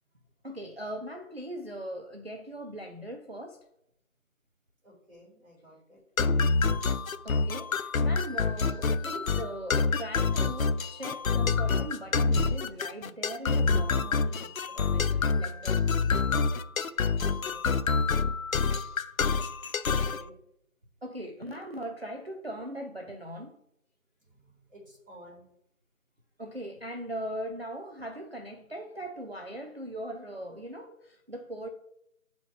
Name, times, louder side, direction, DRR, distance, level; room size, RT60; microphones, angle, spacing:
voice 1, 0.4-3.6 7.2-15.8 21.0-23.6 26.4-31.7, right 1 dB, 45° right, 4 dB, 0.5 m, -40 dB
voice 2, 4.8-6.0 17.2-17.7 19.9-20.4 24.2-25.5, equal, ahead, -24 dB, 2.1 m, -53 dB
sound 1, 6.2-20.2, left 4 dB, 70° left, 0.5 m, -27 dB
7.6 x 4.2 x 3.2 m, 0.78 s
figure-of-eight pair, 170°, 43 cm